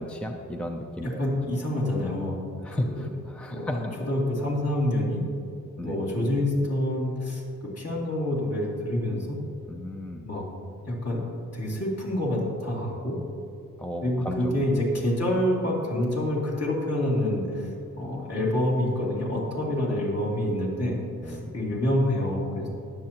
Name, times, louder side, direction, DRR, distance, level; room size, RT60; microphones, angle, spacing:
voice 1, 0.0-1.2 2.6-4.1 5.8-6.0 9.7-10.3 13.8-14.7 21.2-21.5, left 1 dB, 5° left, 4 dB, 0.5 m, -34 dB
voice 2, 1.0-2.4 2.7-3.0 3.5-5.2 5.8-7.4 7.7-9.4 10.2-10.4 10.8-11.2 11.5-13.2 14.0-17.7 18.0-22.7, left 1 dB, 50° left, -4 dB, 3.1 m, -27 dB
21.5 x 7.6 x 3.0 m, 2.6 s
cardioid pair, 140°, 32 cm